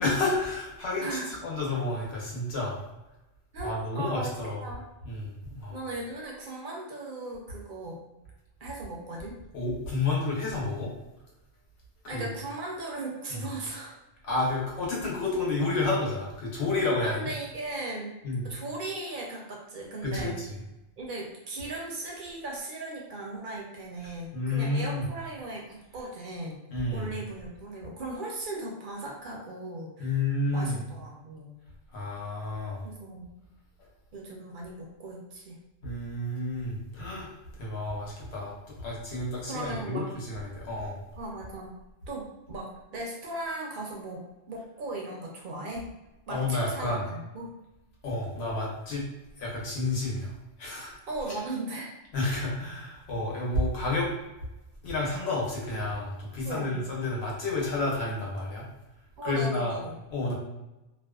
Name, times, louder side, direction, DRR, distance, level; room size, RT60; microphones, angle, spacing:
voice 1, 0.0-2.8 3.6-4.6 5.0-5.8 9.5-10.9 12.1-12.3 13.3-13.4 14.2-17.3 18.2-18.5 20.0-20.3 24.3-25.0 26.7-27.1 30.0-30.8 31.9-32.8 35.8-41.0 46.3-47.0 48.0-49.0 49.4-50.9 52.1-54.1 54.8-58.6 59.2-59.7 60.1-60.3, left 2 dB, 80° left, -3 dB, 1.0 m, -30 dB
voice 2, 1.0-1.4 3.5-4.3 4.6-4.8 5.7-8.0 8.6-9.4 12.1-14.0 17.0-18.2 18.4-20.4 21.0-26.6 26.9-30.1 30.5-31.5 32.8-33.3 34.1-35.6 39.5-40.1 41.2-41.8 42.1-45.9 46.3-47.5 51.1-51.9 56.4-56.8 59.2-60.0, right 2 dB, 60° right, -1 dB, 0.6 m, -37 dB
2.5 x 2.2 x 2.2 m, 1.0 s
omnidirectional pair, 1.1 m